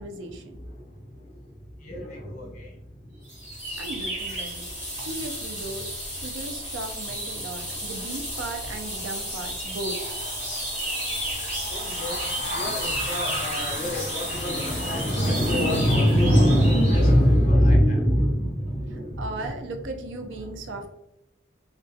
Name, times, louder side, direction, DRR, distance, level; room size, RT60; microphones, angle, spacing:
voice 1, 0.0-0.6 3.8-4.6 5.0-5.9 6.2-9.9 18.9-20.9, right 2 dB, 80° right, 5 dB, 0.4 m, -36 dB
voice 2, 0.6-1.4 1.8-2.8 3.1-3.2 7.7-7.9 9.9-19.5 20.4-20.5, equal, 40° left, -1 dB, 0.6 m, -24 dB
sound 1, 3.3-17.1, equal, 10° right, 1.1 m, -32 dB
2.2 x 2.2 x 2.6 m, 0.86 s
head